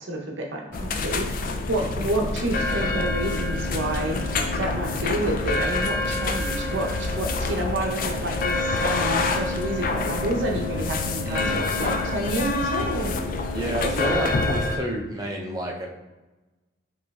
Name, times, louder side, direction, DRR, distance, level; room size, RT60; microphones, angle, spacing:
voice 1, 0.0-4.2 4.6-13.1 13.8-13.9, right 1 dB, 75° right, 1 dB, 0.8 m, -29 dB
sound 1, 0.7-14.8, left 3 dB, 45° left, 0.3 m, -26 dB
sound 2, 0.7-14.8, equal, 10° left, 1.2 m, -42 dB
voice 2, 11.2-11.7 13.5-15.9, right 1 dB, 20° right, 0 dB, 0.5 m, -29 dB
5.2 x 3.0 x 2.3 m, 1.1 s
head